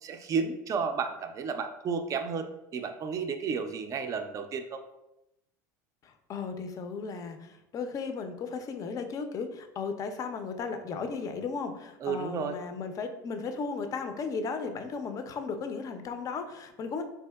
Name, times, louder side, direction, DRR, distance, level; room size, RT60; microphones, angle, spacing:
voice 1, 0.0-4.8 12.0-12.6, right 5 dB, 35° right, 6 dB, 0.4 m, -32 dB
voice 2, 6.0-17.0, left 5 dB, 35° left, 7 dB, 0.4 m, -35 dB
3.5 x 2.7 x 2.2 m, 0.89 s
hypercardioid pair, 85°, 10 cm